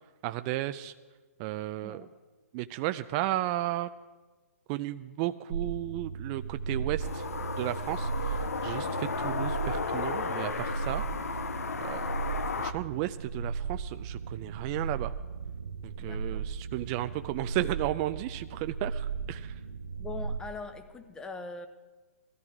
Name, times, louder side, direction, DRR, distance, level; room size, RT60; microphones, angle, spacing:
voice 1, 0.2-0.9 1.4-2.0 2.5-3.9 4.7-7.2 7.6-11.0 11.8-12.1 12.6-15.1 15.8-19.5, right 15 dB, 30° right, 10 dB, 0.3 m, -34 dB
sound 1, 5.5-20.4, right 5 dB, 85° right, 1.1 m, -36 dB
sound 2, 7.0-12.7, left 5 dB, 80° left, 0.9 m, -34 dB
voice 2, 16.0-16.5 20.0-21.7, left 3 dB, 10° left, 9 dB, 0.8 m, -42 dB
18.0 x 13.5 x 4.9 m, 1.3 s
hypercardioid pair, 140°, 8 cm